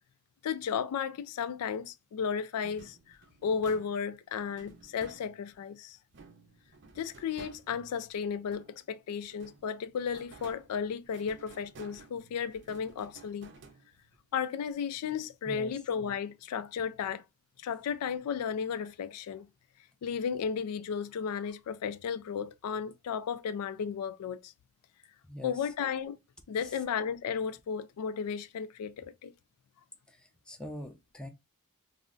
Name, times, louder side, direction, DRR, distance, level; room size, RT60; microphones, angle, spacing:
voice 1, 0.4-6.0 7.0-13.5 14.3-17.2 17.6-19.5 20.0-24.5 25.4-26.2 26.5-29.3, left 7 dB, 85° left, 0.3 m, -34 dB
sound 1, 2.6-5.7 6.1-8.9 9.3-14.2, right 3 dB, 55° right, 0.6 m, -54 dB
voice 2, 15.5-15.8 25.3-25.6 30.1-31.3, left 1 dB, 5° left, 0.4 m, -43 dB
2.4 x 2.1 x 3.7 m
head